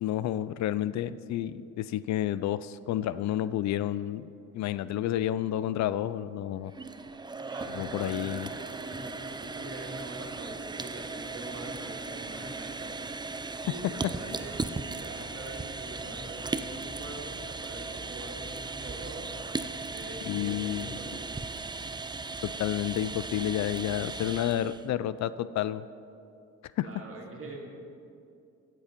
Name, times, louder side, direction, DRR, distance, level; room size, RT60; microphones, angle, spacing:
voice 1, 0.0-4.3 4.5-6.7 7.7-8.5 14.3-14.4 20.2-21.0 22.4-25.8 26.8-26.9, left 12 dB, 65° left, 16 dB, 0.4 m, -30 dB
sound 1, 6.6-24.9, right 3 dB, 15° right, 0.5 m, -37 dB
voice 2, 7.3-12.9 13.7-14.6 15.0-19.3 19.9-21.4 26.8-27.7, right 2 dB, 45° right, 0 dB, 2.4 m, -44 dB
15.0 x 7.6 x 5.2 m, 2.6 s
cardioid pair, 90°, 30 cm